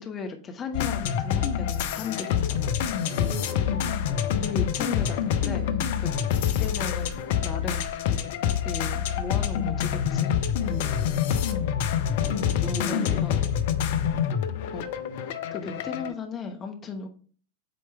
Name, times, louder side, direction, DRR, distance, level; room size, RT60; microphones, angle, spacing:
voice 1, 0.0-2.7 4.1-6.1 6.6-7.9 8.3-8.4 8.6-10.3 12.7-13.4 14.7-14.9 15.5-17.1, left 5 dB, 25° left, 4 dB, 0.9 m, -36 dB
sound 1, 0.7-16.1, left 8 dB, 50° left, 0.6 m, -26 dB
voice 2, 3.1-3.9 6.1-6.4 10.7-11.2 12.0-13.5, equal, 20° right, -3 dB, 1.6 m, -39 dB
8.0 x 3.2 x 4.4 m, 0.43 s
figure-of-eight pair, 90°, 0 cm